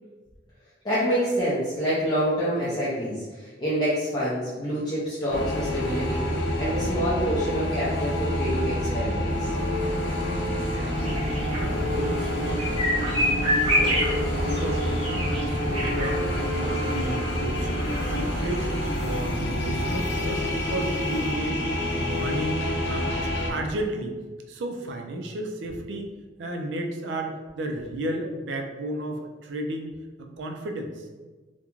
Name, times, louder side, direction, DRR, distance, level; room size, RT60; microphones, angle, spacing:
voice 1, 0.8-9.5, equal, 25° left, -10 dB, 0.4 m, -27 dB
sound 1, 5.3-23.5, left 1 dB, 85° left, 0.5 m, -27 dB
voice 2, 10.4-11.2 11.6-14.0 14.5-16.3 16.5-18.7 19.0-24.1 24.5-26.1 26.4-31.1, right 1 dB, 85° right, 3 dB, 0.4 m, -33 dB
sound 2, 10.9-19.3, equal, 35° right, 0.7 m, -29 dB
2.4 x 2.2 x 2.9 m, 1.3 s
head